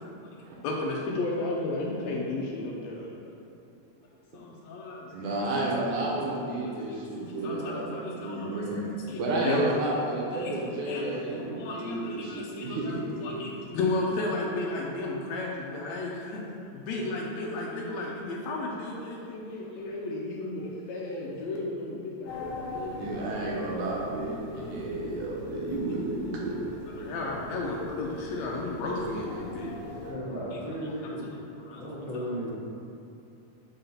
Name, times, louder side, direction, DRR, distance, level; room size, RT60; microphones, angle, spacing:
voice 1, 0.2-3.1 4.3-5.4 6.3-9.8 10.3-16.4 16.7-23.2 24.5-24.6 25.5-25.6 26.9-29.8 30.5-31.1 31.6-31.9 32.1-32.3, left 2 dB, 90° left, -3 dB, 1.5 m, -34 dB
voice 2, 5.1-8.8 9.1-13.0 22.9-26.5, right 2 dB, 70° right, -4 dB, 2.2 m, -31 dB
sound 1, 22.2-30.1, left 2 dB, 70° left, 1.9 m, -40 dB
voice 3, 29.9-31.2 31.7-32.5, equal, 55° left, -10 dB, 1.5 m, -35 dB
5.5 x 3.8 x 5.6 m, 2.7 s
omnidirectional pair, 3.8 m